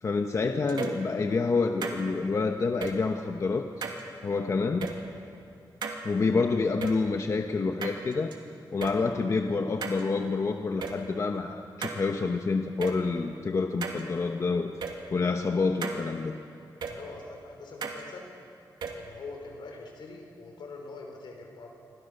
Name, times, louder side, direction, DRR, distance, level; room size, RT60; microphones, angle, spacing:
voice 1, 0.0-3.9 4.2-4.9 6.0-8.3 8.7-14.7 15.1-16.4, left 4 dB, 40° left, 5 dB, 1.1 m, -28 dB
sound 1, 0.7-1.0 1.8-2.0 2.8-2.9 3.8-4.0 4.8-4.9 5.8-6.0 6.8-6.9 7.8-8.4 8.8-8.9 9.8-10.0 10.8-10.9 11.8-12.0 12.8-12.9 13.8-14.0 14.8-14.9 15.8-16.0 16.8-16.9 17.8-18.0 18.8-18.9, right 5 dB, 80° right, 2.7 m, -34 dB
voice 2, 16.8-18.3 18.9-21.7, left 3 dB, 80° left, 2 dB, 5.3 m, -44 dB
27.5 x 24.5 x 6.8 m, 2.6 s
wide cardioid pair, 125°, 8 cm